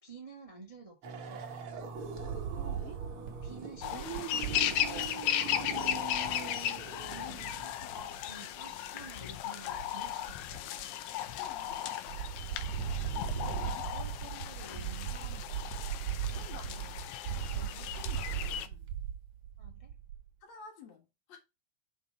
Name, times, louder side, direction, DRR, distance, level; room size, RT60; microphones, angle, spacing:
voice 1, 0.0-1.4 3.4-4.8 5.1-6.0 7.1-7.8 8.3-10.7 13.3-15.8 16.7-16.9 17.5-17.9 19.6-19.9, right 3 dB, 15° right, 1.1 m, -51 dB
sound 1, 1.0-7.8, right 6 dB, 50° right, 1.9 m, -42 dB
Wind, 2.0-5.1 5.6-5.7 5.9-6.3 7.7-8.3 8.9-9.4 9.7-10.8 11.3-11.8 12.1-20.3, right 9 dB, 70° right, 2.6 m, -38 dB
voice 2, 2.2-3.0 7.2-8.2 11.4-12.4 13.6-13.9 16.3-17.0 18.0-18.9 20.4-21.4, left 5 dB, 60° left, 2.9 m, -53 dB
sound 2, 3.8-18.7, left 11 dB, 80° left, 2.2 m, -36 dB
6.0 x 5.5 x 4.6 m
omnidirectional pair, 3.5 m